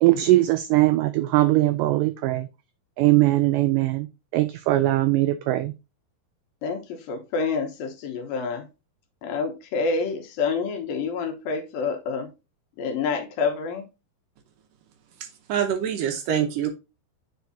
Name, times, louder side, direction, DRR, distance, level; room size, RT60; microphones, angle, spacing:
voice 1, 0.0-2.5 3.0-4.1 4.3-5.7, right 17 dB, 90° right, 12 dB, 1.8 m, -20 dB
voice 2, 6.6-8.7 9.2-12.3 12.8-13.9, left 4 dB, 75° left, 4 dB, 2.8 m, -28 dB
voice 3, 15.5-16.7, right 9 dB, 70° right, 7 dB, 2.4 m, -25 dB
8.9 x 4.7 x 2.7 m, 0.26 s
omnidirectional pair, 4.3 m